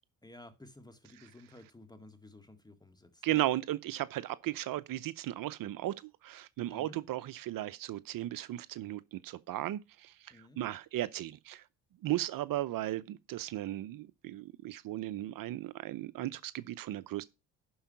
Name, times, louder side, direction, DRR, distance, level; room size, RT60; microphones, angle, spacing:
voice 1, 0.2-3.5 6.7-7.0 10.3-10.6, left 1 dB, 10° left, 1.9 m, -54 dB
voice 2, 3.2-5.9 6.2-11.6 12.0-17.2, right 14 dB, 65° right, 0.7 m, -36 dB
11.5 x 4.7 x 5.6 m
supercardioid pair, 70°, 37 cm